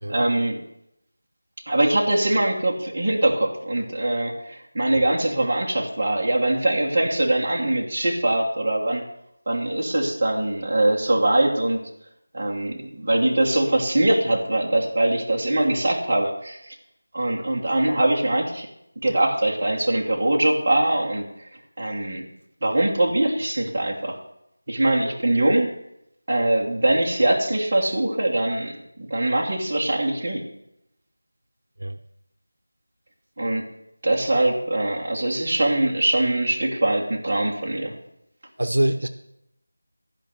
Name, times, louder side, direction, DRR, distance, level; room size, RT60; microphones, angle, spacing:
voice 1, 0.1-0.6 1.7-9.0 9.5-11.8 12.3-16.7 17.1-18.7 19.0-21.3 21.8-22.2 22.6-24.2 24.7-25.8 26.3-30.5 33.4-33.7 34.0-38.0, right 1 dB, 25° right, -3 dB, 1.4 m, -22 dB
voice 2, 38.6-39.1, right 1 dB, 75° right, 8 dB, 0.8 m, -23 dB
12.0 x 5.3 x 7.6 m, 0.81 s
figure-of-eight pair, 180°, 0 cm